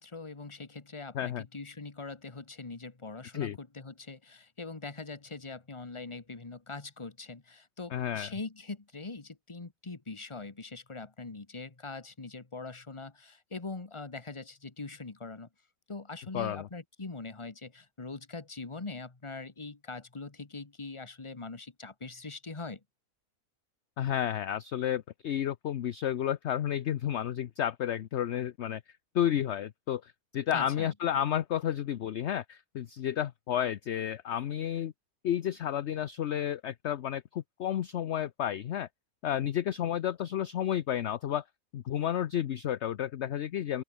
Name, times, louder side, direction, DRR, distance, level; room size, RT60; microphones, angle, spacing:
voice 1, 0.0-15.5 15.9-22.8 30.5-30.9, left 3 dB, 20° left, 1.5 m, -42 dB
voice 2, 7.9-8.3 16.3-16.7 24.0-28.8 29.1-34.9 35.2-38.9 39.2-41.4 41.7-43.8, left 10 dB, 60° left, 0.9 m, -31 dB
open air
omnidirectional pair, 1.5 m